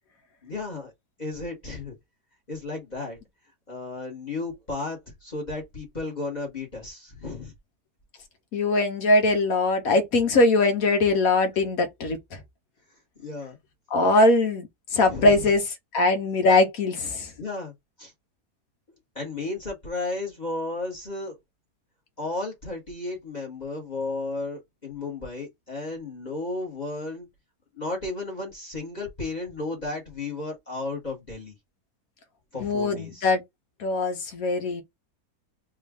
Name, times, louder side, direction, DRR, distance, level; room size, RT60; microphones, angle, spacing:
voice 1, 0.4-0.9 1.2-2.0 2.5-3.2 3.7-7.5 13.2-13.6 15.0-15.5 17.4-17.7 18.0-18.1 19.1-21.4 22.2-27.3 27.7-31.5 32.5-33.2, left 3 dB, 30° left, 1.2 m, -33 dB
voice 2, 8.5-12.2 13.9-14.7 14.9-15.6 15.9-17.3 32.6-33.4 33.8-34.8, left 2 dB, 65° left, 1.3 m, -21 dB
3.5 x 2.4 x 3.4 m
omnidirectional pair, 1.7 m